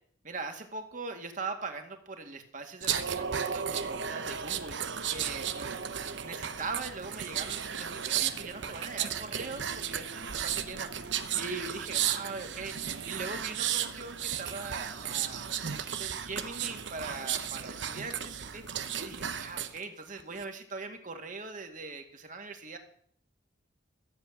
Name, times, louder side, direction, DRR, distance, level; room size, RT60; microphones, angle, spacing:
voice 1, 0.2-4.8 5.1-5.8 6.2-10.9 11.4-12.8 13.1-18.6 19.0-22.8, right 3 dB, 45° right, 5 dB, 2.0 m, -41 dB
sound 1, 2.8-19.8 20.2-20.4, right 8 dB, 75° right, 0.9 m, -34 dB
14.5 x 7.7 x 8.9 m, 0.63 s
head